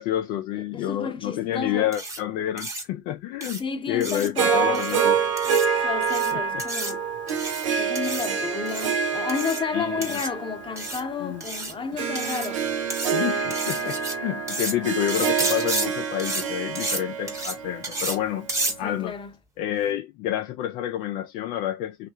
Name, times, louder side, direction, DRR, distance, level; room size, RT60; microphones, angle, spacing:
voice 1, 0.0-5.2 6.3-6.6 9.7-10.2 11.2-11.4 13.1-18.5 18.8-19.1 19.6-22.1, left 12 dB, 65° left, 0.4 m, -29 dB
voice 2, 0.5-1.9 3.6-5.3 5.8-7.0 7.8-12.8 18.8-19.3, left 6 dB, 35° left, 0.8 m, -31 dB
sound 1, 1.9-2.2 2.6-2.8 3.4-3.6 4.0-4.3 4.7-5.0 5.4-5.7 6.0-6.3 6.6-6.9 7.3-7.6 7.9-8.3 8.6-8.9 9.3-9.6 10.0-10.3 10.8-11.0 11.4-11.7 12.1-12.5 12.9-13.1 13.5-14.1 14.5-14.7 15.1-15.9 16.2-16.4 16.7-17.0 17.3-17.5 17.8-18.2 18.5-18.7, right 2 dB, 20° right, 1.1 m, -31 dB
Harp, 4.4-18.7, right 6 dB, 85° right, 0.6 m, -27 dB
3.1 x 2.4 x 2.7 m
hypercardioid pair, 55°, 16 cm